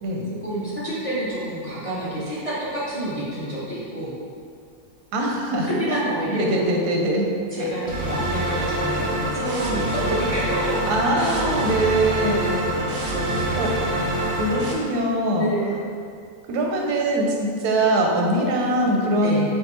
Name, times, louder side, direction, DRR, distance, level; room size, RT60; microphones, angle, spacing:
voice 1, 0.4-4.1 5.7-6.7 7.5-11.7 12.4-14.1 15.3-15.7 19.2-19.5, right 1 dB, 30° left, -9 dB, 0.7 m, -29 dB
voice 2, 5.1-7.3 7.6-7.7 10.9-12.6 13.6-13.7 14.4-15.5 16.5-19.5, right 1 dB, 85° right, 0 dB, 1.2 m, -22 dB
sound 1, 7.9-14.7, right 1 dB, 55° right, 0.6 m, -25 dB
5.8 x 2.4 x 3.1 m, 2.3 s
omnidirectional pair, 1.6 m